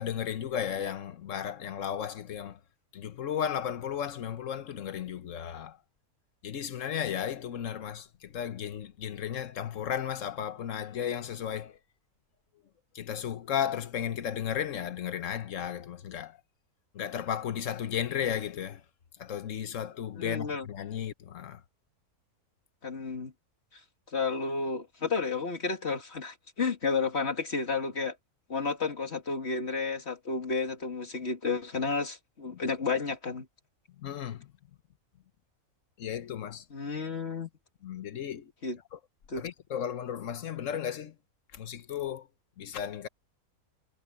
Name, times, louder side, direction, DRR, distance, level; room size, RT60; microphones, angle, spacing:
voice 1, 0.0-2.6 2.9-5.8 6.4-11.8 12.9-16.4 16.9-18.8 19.2-21.6 32.5-32.6 34.0-34.5 36.0-36.6 37.8-38.5 38.9-39.0 39.4-41.1 41.5-42.3 42.6-43.1, left 9 dB, 60° left, 1.3 m, -34 dB
voice 2, 20.2-20.7 22.8-23.3 23.7-23.8 24.1-28.2 28.5-33.5 36.7-37.5 38.6-38.8 39.3-39.5, left 4 dB, 45° left, 2.5 m, -31 dB
omnidirectional pair, 1.6 m